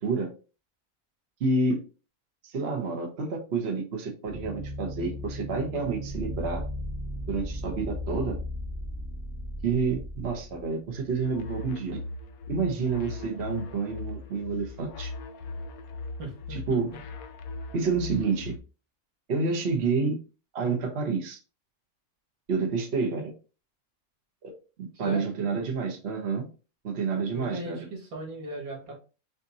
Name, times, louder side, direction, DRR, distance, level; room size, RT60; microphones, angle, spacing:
voice 1, 1.4-1.8 2.4-6.6 7.3-8.4 9.6-12.0 12.5-15.1 16.5-16.9 17.7-18.5 19.3-20.2 20.5-21.4 22.5-23.3 24.4-24.5 24.8-26.5 26.8-27.8, right 4 dB, 50° right, 1 dB, 1.2 m, -29 dB
sound 1, 4.3-11.4, equal, 10° right, 1.0 m, -36 dB
sound 2, 11.2-18.6, left 4 dB, 80° left, 1.1 m, -39 dB
voice 2, 16.2-16.8 25.0-25.3 27.3-28.9, right 1 dB, 90° right, -2 dB, 2.4 m, -38 dB
6.3 x 2.6 x 2.7 m, 0.34 s
omnidirectional pair, 1.5 m